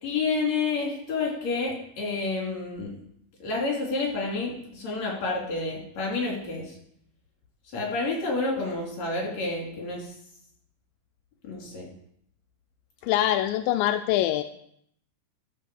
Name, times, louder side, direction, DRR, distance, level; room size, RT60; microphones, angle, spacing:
voice 1, 0.0-2.9 3.4-6.7 7.7-10.1 11.4-11.9, left 3 dB, 55° left, -1 dB, 4.5 m, -29 dB
voice 2, 13.0-14.4, left 13 dB, 90° left, 8 dB, 2.3 m, -24 dB
11.5 x 7.6 x 7.0 m, 0.70 s
omnidirectional pair, 3.9 m